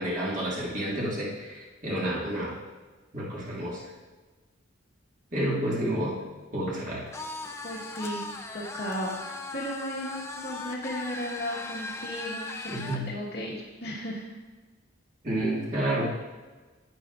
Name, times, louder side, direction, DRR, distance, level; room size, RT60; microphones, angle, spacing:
voice 1, 0.0-2.6 3.1-3.8 5.3-6.2 6.5-7.1 12.7-13.1 15.2-16.4, right 1 dB, 40° right, -6 dB, 2.0 m, -30 dB
sound 1, 7.1-13.0, left 2 dB, 15° left, 0.5 m, -38 dB
voice 2, 7.6-8.3 8.5-14.3, equal, 60° left, -8 dB, 1.4 m, -35 dB
11.0 x 9.5 x 2.5 m, 1.3 s
head